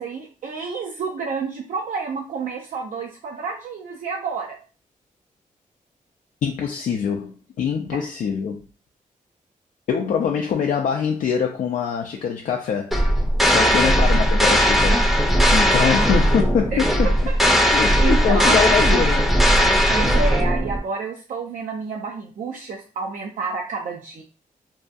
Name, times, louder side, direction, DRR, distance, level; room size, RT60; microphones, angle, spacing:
voice 1, 0.0-4.6 7.9-8.0 13.5-14.1 15.7-16.2 16.7-17.1 17.7-19.0 19.9-24.2, right 4 dB, 65° right, 0.5 m, -30 dB
voice 2, 6.4-8.6 9.9-13.0 13.4-15.1 15.5-17.1 17.6-19.2, left 7 dB, 65° left, 0.4 m, -24 dB
sound 1, 12.9-20.8, equal, ahead, 0.6 m, -18 dB
2.6 x 2.3 x 2.5 m
cardioid pair, 100°, 14 cm